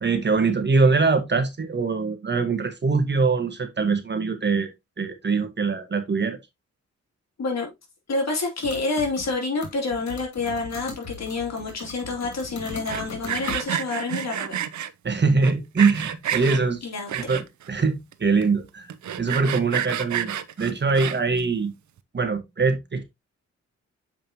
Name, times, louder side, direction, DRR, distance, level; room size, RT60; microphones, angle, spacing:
voice 1, 0.0-4.7 5.0-6.4 15.0-16.8 17.1-18.9 19.2-21.7 22.1-23.0, right 4 dB, 40° right, 1.4 m, -23 dB
voice 2, 7.4-7.7 8.1-14.6 16.3-16.5 16.8-17.1, left 3 dB, 65° left, 2.9 m, -28 dB
sound 1, 8.6-9.4 9.6-13.6, left 5 dB, 85° left, 2.2 m, -38 dB
Sawing, 12.7-14.9 15.4-16.6 17.1-17.7 18.1-18.2 18.4-18.5 18.9-21.4, right 10 dB, 75° right, 0.7 m, -29 dB
7.2 x 5.1 x 2.9 m
cardioid pair, 90°, 29 cm